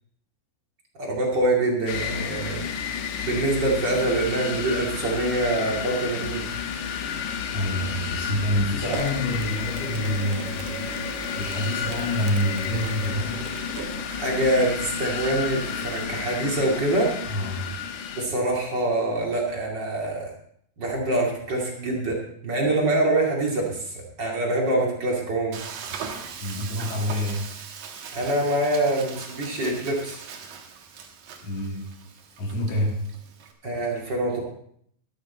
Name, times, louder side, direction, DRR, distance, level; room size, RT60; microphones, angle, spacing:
voice 1, 1.0-2.7 3.2-6.5 8.8-9.0 14.0-17.1 18.2-20.3 20.8-22.1 22.4-25.6 28.1-30.2 33.6-34.4, right 2 dB, 35° right, -1 dB, 2.1 m, -25 dB
sound 1, 1.9-18.3, left 7 dB, 75° left, 1.9 m, -31 dB
voice 2, 7.5-13.4 17.3-17.7 26.4-27.5 31.4-31.9 32.4-33.0, left 1 dB, 45° left, -2 dB, 2.3 m, -27 dB
Mechanisms, 8.9-16.0, right 7 dB, 90° right, 1.8 m, -39 dB
Frying (food), 25.5-33.5, right 6 dB, 60° right, 2.1 m, -40 dB
13.0 x 11.5 x 4.2 m, 0.67 s
omnidirectional pair, 5.0 m